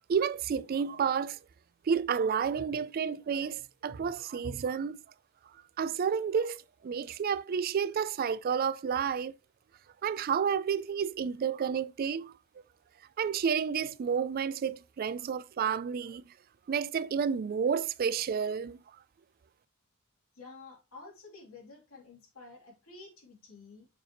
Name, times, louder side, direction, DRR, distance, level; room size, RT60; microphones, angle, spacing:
voice 1, 0.1-1.4 1.9-5.0 5.8-9.3 10.0-12.3 13.2-16.2 16.7-18.8, right 7 dB, 45° right, 0.3 m, -30 dB
voice 2, 20.3-23.9, left 3 dB, 85° left, 3.0 m, -51 dB
6.7 x 4.8 x 3.0 m
head